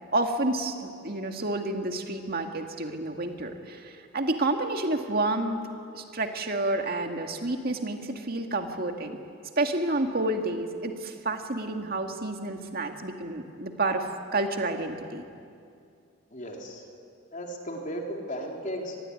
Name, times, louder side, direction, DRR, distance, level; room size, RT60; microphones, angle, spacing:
voice 1, 0.1-5.6 5.9-9.2 9.6-15.2, right 2 dB, 45° right, 4 dB, 2.1 m, -29 dB
voice 2, 16.3-16.8 17.3-19.0, equal, 40° left, 0 dB, 3.6 m, -35 dB
25.5 x 21.0 x 9.9 m, 2.4 s
head